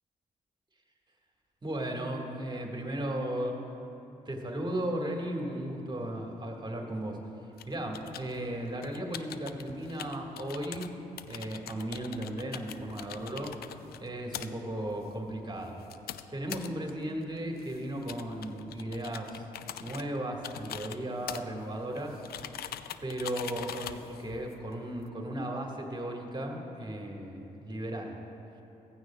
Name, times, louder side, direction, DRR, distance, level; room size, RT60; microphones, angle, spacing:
voice 1, 1.6-3.6 4.3-7.2 7.6-10.9 11.3-15.8 16.3-19.5 19.8-22.2 23.0-28.2, right 1 dB, 25° right, 1 dB, 1.9 m, -36 dB
sound 1, 7.6-25.1, left 10 dB, 60° left, 0.4 m, -44 dB
15.0 x 15.0 x 2.4 m, 2.9 s
hypercardioid pair, 40°, 18 cm